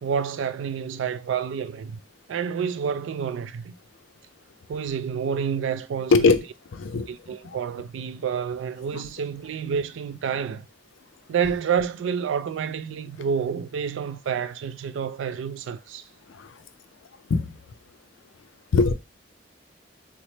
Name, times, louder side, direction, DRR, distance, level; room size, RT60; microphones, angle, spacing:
voice 1, 0.0-2.0 2.3-3.8 4.7-6.3 7.1-10.7 11.3-16.1, right 7 dB, 85° right, 0.3 m, -29 dB
voice 2, 6.1-6.4 6.7-7.6 8.9-9.0 16.3-16.5 17.3-17.5 18.7-18.9, left 4 dB, 85° left, 0.4 m, -22 dB
3.2 x 2.0 x 4.0 m
head